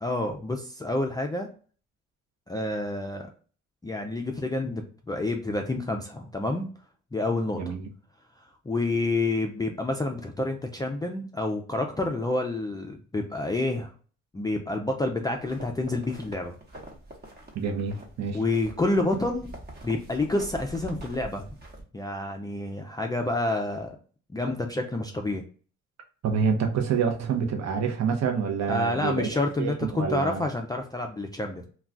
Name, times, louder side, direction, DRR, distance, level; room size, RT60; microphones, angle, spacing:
voice 1, 0.0-1.5 2.5-3.3 3.8-6.7 7.1-7.7 8.7-13.9 14.3-16.5 18.3-19.5 19.8-21.5 21.9-24.0 24.3-25.4 28.7-31.6, left 2 dB, 15° left, 2 dB, 0.3 m, -28 dB
sound 1, 15.4-21.8, right 1 dB, 35° right, 0.9 m, -45 dB
voice 2, 17.5-18.4 26.2-29.3 29.6-30.4, right 6 dB, 60° right, 3 dB, 0.7 m, -27 dB
2.3 x 2.2 x 3.7 m, 0.41 s
cardioid pair, 90°, 30 cm